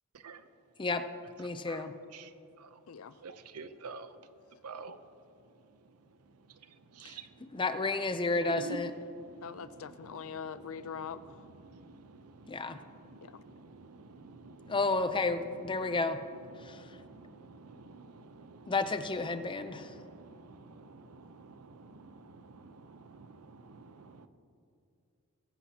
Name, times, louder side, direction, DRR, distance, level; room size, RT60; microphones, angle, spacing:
voice 1, 1.4-1.9 7.0-7.2 7.5-8.9 12.5-12.8 14.7-16.2 16.7-16.8 18.7-19.9, left 3 dB, 20° left, 10 dB, 0.6 m, -31 dB
voice 2, 3.2-4.1 4.6-5.0 7.0-7.3 8.5-8.8 9.2-9.4 11.7-14.8 16.5-18.7 19.5-24.3, right 3 dB, 85° right, 11 dB, 0.7 m, -49 dB
voice 3, 9.4-11.3 13.2-13.3, left 6 dB, 70° left, 14 dB, 0.5 m, -42 dB
21.5 x 10.0 x 2.9 m, 2.6 s
head